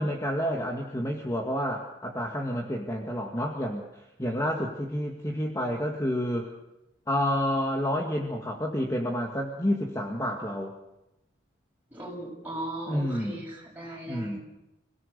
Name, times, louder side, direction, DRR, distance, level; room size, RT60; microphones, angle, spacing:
voice 1, 0.0-3.8 4.2-6.5 7.1-10.7 12.9-13.4 14.1-14.4, equal, 15° left, 1 dB, 1.9 m, -29 dB
voice 2, 11.9-14.4, right 1 dB, 10° right, -3 dB, 7.4 m, -38 dB
27.5 x 17.5 x 6.8 m, 0.90 s
head